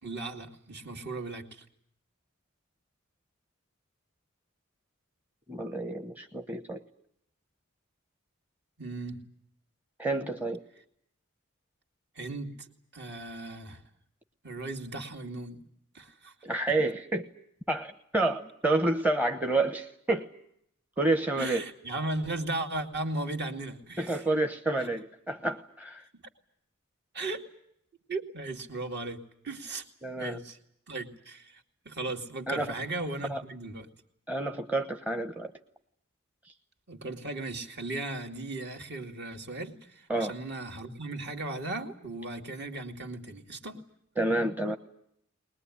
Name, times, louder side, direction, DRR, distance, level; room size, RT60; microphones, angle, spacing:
voice 1, 0.0-1.7 8.8-9.3 12.1-12.7 12.9-13.8 14.4-15.6 15.9-16.3 16.7-16.8 21.4-24.2 26.1-26.2 27.1-27.4 28.1-29.8 30.2-30.6 30.9-33.9 36.9-43.8, right 2 dB, 50° right, 4 dB, 2.5 m, -37 dB
voice 2, 5.5-6.8 10.0-10.6 16.4-17.3 17.7-20.3 21.0-21.6 24.0-26.0 30.0-30.4 32.5-32.7 33.3-33.4 34.3-35.5 40.1-40.3 44.2-44.8, right 2 dB, 10° right, 6 dB, 1.0 m, -29 dB
22.0 x 21.0 x 9.9 m, 0.71 s
head